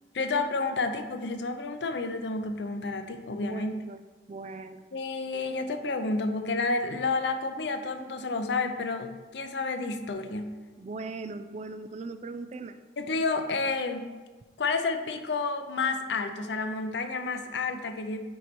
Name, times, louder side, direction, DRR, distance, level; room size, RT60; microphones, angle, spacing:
voice 1, 0.1-3.7 4.9-10.5 13.0-14.0 14.6-18.2, left 3 dB, 80° left, 7 dB, 0.6 m, -30 dB
voice 2, 3.4-4.0 4.3-4.8 10.8-12.8, right 3 dB, 40° right, 9 dB, 0.3 m, -39 dB
9.1 x 3.2 x 4.3 m, 1.3 s
head